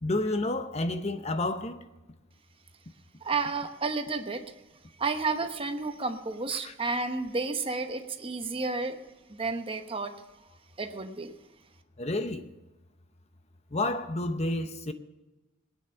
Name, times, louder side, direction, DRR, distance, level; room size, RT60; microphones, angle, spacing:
voice 1, 0.0-1.8 6.5-6.7 12.0-12.5 13.7-14.9, left 2 dB, 30° left, 0.8 m, -30 dB
voice 2, 3.2-4.4 5.0-9.0 9.3-10.1 10.8-11.3, right 4 dB, 25° right, 1.0 m, -31 dB
18.5 x 9.3 x 5.8 m
head